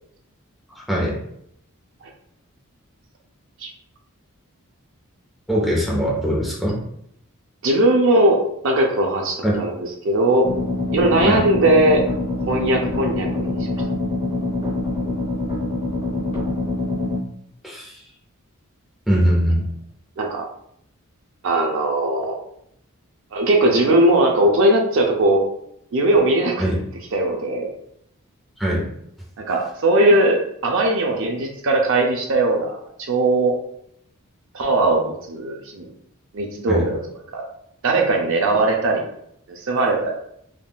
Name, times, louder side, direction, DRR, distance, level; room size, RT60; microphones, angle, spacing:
voice 1, 0.8-1.1 5.5-6.8 9.4-9.5 11.3-11.5 17.6-18.0 19.1-19.7 26.6-26.8 28.6-28.8 36.7-36.8, equal, ahead, -5 dB, 0.7 m, -21 dB
voice 2, 7.6-10.5 10.9-12.0 12.5-13.6 20.2-20.4 21.4-22.4 23.3-25.4 25.9-26.7 27.1-27.7 29.5-33.5 34.5-35.9 36.3-37.0 37.3-37.4 37.8-39.0 39.5-40.1, right 1 dB, 60° right, 1 dB, 0.5 m, -19 dB
sound 1, 10.4-17.2, left 2 dB, 30° right, 1.0 m, -25 dB
3.5 x 2.4 x 2.2 m, 0.73 s
head